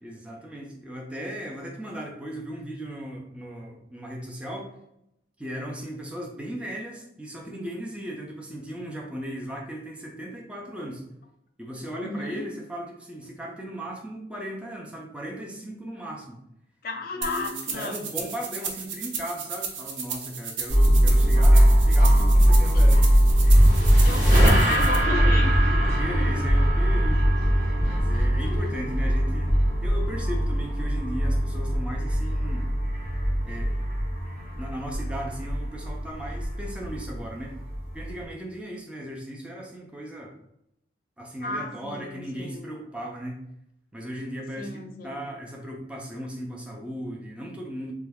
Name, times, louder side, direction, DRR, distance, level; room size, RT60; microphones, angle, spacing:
voice 1, 0.0-4.7 5.4-11.0 11.6-16.4 17.1-23.1 25.7-27.3 27.8-29.5 29.8-32.7 33.5-33.8 34.6-37.5 37.9-40.3 41.2-43.4 43.9-47.9, equal, 5° right, -1 dB, 0.4 m, -37 dB
voice 2, 12.0-12.5 16.8-18.0 19.2-19.3 22.7-22.8 24.0-26.3 28.5-28.7 41.4-42.7 44.6-45.3, left 3 dB, 50° left, 4 dB, 0.5 m, -34 dB
sound 1, 17.2-25.0, right 6 dB, 90° right, 0.6 m, -35 dB
sound 2, 20.7-38.2, equal, 35° right, 1.2 m, -21 dB
sound 3, 23.1-28.5, right 1 dB, 50° right, 1.4 m, -28 dB
3.2 x 2.3 x 3.4 m, 0.81 s
head